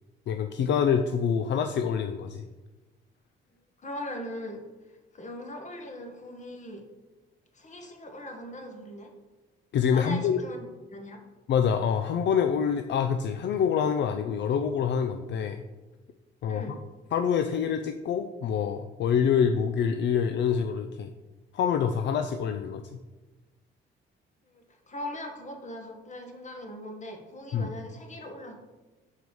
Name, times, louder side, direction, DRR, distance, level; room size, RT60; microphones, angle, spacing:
voice 1, 0.3-2.4 9.7-10.4 11.5-15.6 16.4-16.6 17.1-21.1 21.5-23.0 27.5-27.7, left 7 dB, 65° left, 7 dB, 0.5 m, -26 dB
voice 2, 3.8-4.6 5.1-6.8 7.5-9.1 9.9-11.2 16.5-16.8 24.5-28.5, left 1 dB, 35° left, 3 dB, 1.5 m, -40 dB
6.5 x 4.6 x 5.3 m, 1.2 s
cardioid pair, 90°, 20 cm